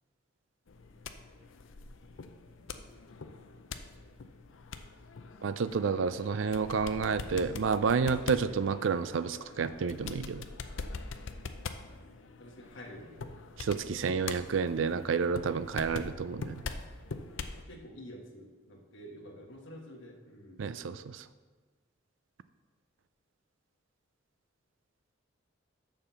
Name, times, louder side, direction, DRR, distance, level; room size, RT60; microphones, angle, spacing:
sound 1, 0.7-17.6, left 4 dB, 90° left, 0.6 m, -43 dB
voice 1, 5.4-10.5 13.6-16.6 20.6-21.2, right 5 dB, 80° right, 14 dB, 0.4 m, -30 dB
voice 2, 12.4-13.3 17.5-21.0, equal, 70° left, 0 dB, 1.5 m, -49 dB
7.0 x 5.7 x 6.9 m, 1.4 s
head